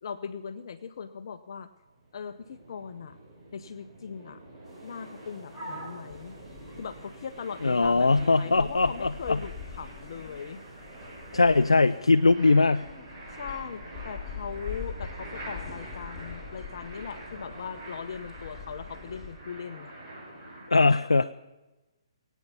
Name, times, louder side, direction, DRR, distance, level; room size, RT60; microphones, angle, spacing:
voice 1, 0.0-1.7 2.1-3.2 3.5-4.4 4.8-6.4 6.8-10.6 13.3-19.9, left 6 dB, 55° left, 10 dB, 0.7 m, -39 dB
sound 1, 1.8-20.7, right 1 dB, 30° right, 6.2 m, -46 dB
sound 2, 4.6-12.0, right 1 dB, 15° right, 4.8 m, -50 dB
sound 3, 6.1-19.3, left 6 dB, 15° left, 3.7 m, -44 dB
voice 2, 7.6-9.4 11.3-12.9 20.7-21.3, left 3 dB, 85° left, 10 dB, 0.4 m, -21 dB
20.0 x 9.3 x 7.0 m, 1.1 s
figure-of-eight pair, 135°, 3 cm